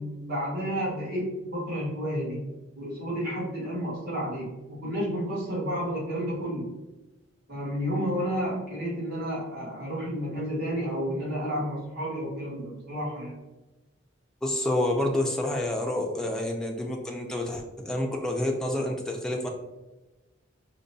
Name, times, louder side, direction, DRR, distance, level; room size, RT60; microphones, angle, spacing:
voice 1, 0.0-2.4 2.8-4.5 4.8-6.7 7.5-13.4, equal, 55° right, -6 dB, 1.4 m, -31 dB
voice 2, 14.4-19.5, left 1 dB, 5° left, 0 dB, 0.4 m, -28 dB
5.0 x 2.2 x 2.6 m, 1.1 s
head